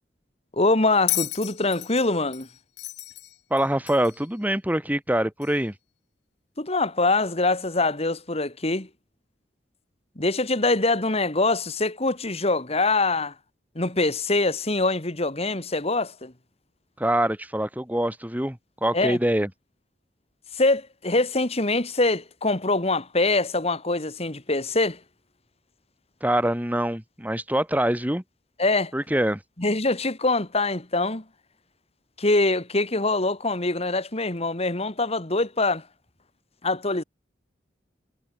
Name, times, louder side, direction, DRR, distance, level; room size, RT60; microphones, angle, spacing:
voice 1, 0.6-2.5 6.6-8.9 10.2-13.3 13.8-16.3 18.9-19.2 20.5-25.0 28.6-28.9 29.6-31.2 32.2-35.8 36.6-37.0, left 2 dB, 35° left, 2.7 m, -24 dB
Bell, 1.1-4.3 5.4-5.5, left 16 dB, 70° left, 5.0 m, -32 dB
voice 2, 3.5-5.7 17.0-19.5 26.2-28.2 28.9-29.4, right 1 dB, 10° right, 3.0 m, -24 dB
head